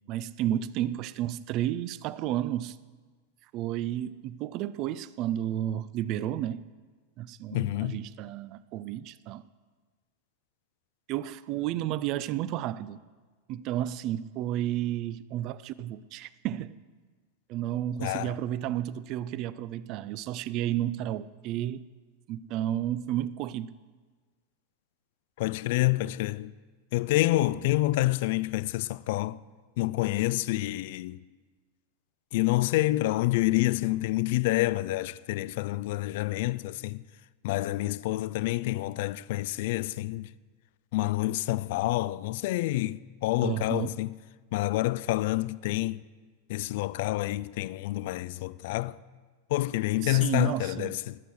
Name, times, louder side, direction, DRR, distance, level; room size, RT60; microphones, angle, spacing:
voice 1, 0.1-2.8 3.5-6.7 7.2-9.5 11.1-13.0 13.5-16.8 17.5-21.8 22.3-23.7 43.4-44.0 50.0-51.0, right 12 dB, 40° right, 0.4 m, -32 dB
voice 2, 7.5-8.0 18.0-18.3 25.4-26.5 26.9-29.4 29.8-31.2 32.3-37.0 37.4-40.3 40.9-44.1 44.5-46.0 46.5-49.0 49.5-51.2, left 18 dB, 50° left, 0.3 m, -28 dB
19.0 x 6.9 x 6.3 m
figure-of-eight pair, 90°, 0 cm